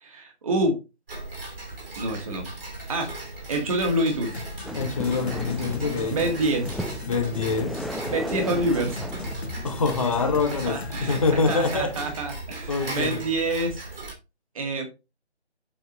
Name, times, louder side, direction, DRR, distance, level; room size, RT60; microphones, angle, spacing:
voice 1, 0.0-0.8 2.0-2.5 2.9-3.2 3.5-4.4 6.1-6.8 8.1-9.1 10.7-11.2 11.5-13.8 14.5-14.8, right 1 dB, 30° right, 1.9 m, -27 dB
Tick-tock, 1.1-14.1, right 2 dB, 55° right, 2.9 m, -38 dB
sound 1, 4.3-12.1, left 3 dB, 65° left, 1.5 m, -37 dB
sound 2, 4.6-10.3, equal, ahead, 0.3 m, -36 dB
voice 2, 4.7-6.2 7.1-7.8 9.6-12.0 12.7-13.2, left 4 dB, 30° left, 1.1 m, -25 dB
7.6 x 4.5 x 3.9 m
figure-of-eight pair, 155°, 34 cm